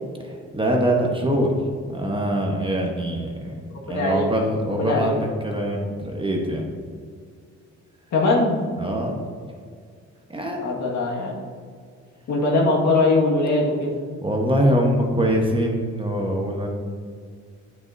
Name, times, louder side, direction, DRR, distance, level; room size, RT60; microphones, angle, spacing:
voice 1, 0.2-1.5 1.9-3.5 3.8-6.6 8.8-9.2 10.3-10.7 14.2-16.7, equal, 15° right, 1 dB, 1.2 m, -23 dB
voice 2, 3.9-4.3 4.8-5.2 8.1-8.6 10.6-11.4 12.3-13.9, left 2 dB, 65° left, -2 dB, 1.8 m, -21 dB
8.5 x 7.7 x 2.7 m, 2.1 s
cardioid pair, 90°, 30 cm